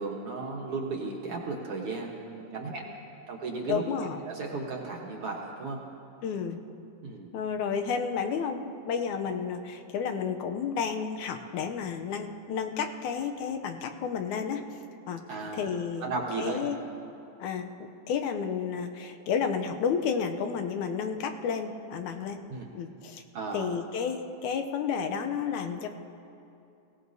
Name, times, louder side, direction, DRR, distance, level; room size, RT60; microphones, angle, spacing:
voice 1, 0.0-2.8 3.3-5.8 7.0-7.3 15.3-15.7 16.0-16.7 22.5-22.7 23.3-23.7, right 3 dB, 60° right, -1 dB, 1.9 m, -35 dB
voice 2, 3.7-4.2 6.2-6.6 7.3-14.8 15.1-15.2 15.5-16.8 17.4-22.4 22.7-23.2 23.5-25.9, left 6 dB, 80° left, 5 dB, 2.1 m, -31 dB
21.5 x 17.0 x 2.7 m, 2.7 s
omnidirectional pair, 3.4 m